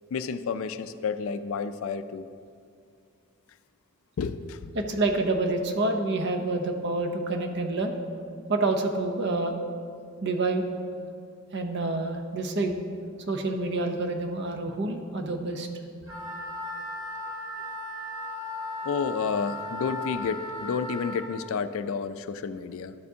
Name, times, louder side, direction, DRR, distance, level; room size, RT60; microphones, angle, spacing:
voice 1, 0.1-2.3 4.2-4.7 18.8-23.0, left 5 dB, 70° left, 12 dB, 0.3 m, -30 dB
voice 2, 4.8-7.9 8.5-9.6 10.2-10.6 11.5-12.8 13.3-15.7, right 2 dB, 50° right, 4 dB, 0.7 m, -27 dB
Wind instrument woodwind instrument, 16.0-21.3, left 1 dB, 85° right, 2.2 m, -36 dB
12.0 x 6.7 x 2.7 m, 2.4 s
head